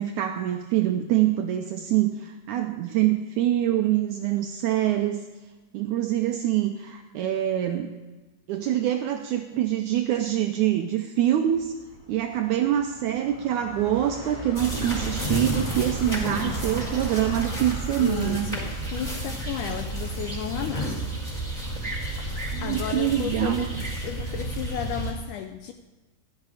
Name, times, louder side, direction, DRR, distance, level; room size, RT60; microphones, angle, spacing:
voice 1, 0.0-5.2 5.7-7.9 8.5-11.7 12.1-18.6 22.5-23.6, right 12 dB, 80° right, 5 dB, 1.8 m, -25 dB
sound 1, 11.2-22.7, left 2 dB, 60° left, 3.3 m, -43 dB
sound 2, 14.6-25.1, right 1 dB, 10° left, 3.7 m, -31 dB
voice 2, 16.0-16.6 18.0-21.0 22.6-23.8 24.0-25.7, left 9 dB, 80° left, 8 dB, 1.8 m, -34 dB
15.5 x 11.0 x 4.9 m, 1.2 s
omnidirectional pair, 4.2 m